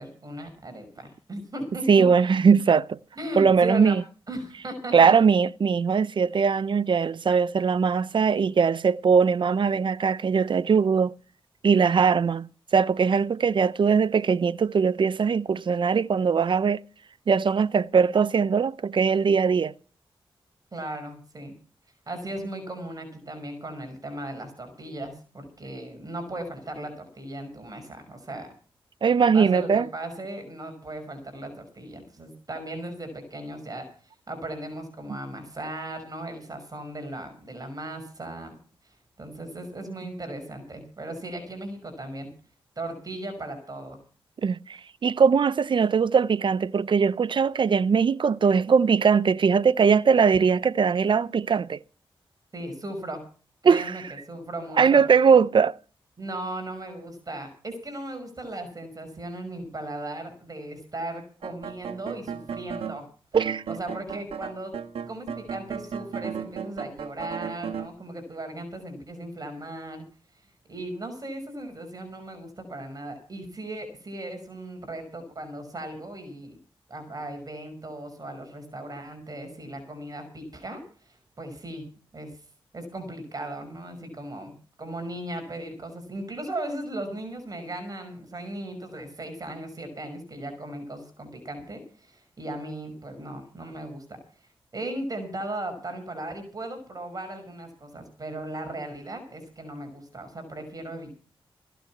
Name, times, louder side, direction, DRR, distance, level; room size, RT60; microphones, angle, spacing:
voice 1, 0.0-2.1 3.2-3.9 4.3-5.1 20.7-21.5 22.1-28.5 29.3-33.9 34.3-38.6 39.2-42.3 42.8-44.0 52.5-53.2 53.6-54.0 54.3-55.0 56.2-63.1 63.7-64.7 65.1-70.0 70.7-76.6 76.9-81.9 82.1-82.3 82.7-94.0 94.7-101.1, right 1 dB, 40° right, 5.7 m, -37 dB
voice 2, 1.9-3.0 3.4-4.0 4.9-11.1 11.6-16.8 17.3-19.7 29.0-29.9 44.4-51.8 53.6-53.9 54.8-55.8 63.3-63.6, right 6 dB, 55° right, 0.6 m, -21 dB
sound 1, 61.4-63.0 63.3-67.9, right 7 dB, 80° right, 1.4 m, -35 dB
16.5 x 10.0 x 5.9 m
cardioid pair, 65°, 10 cm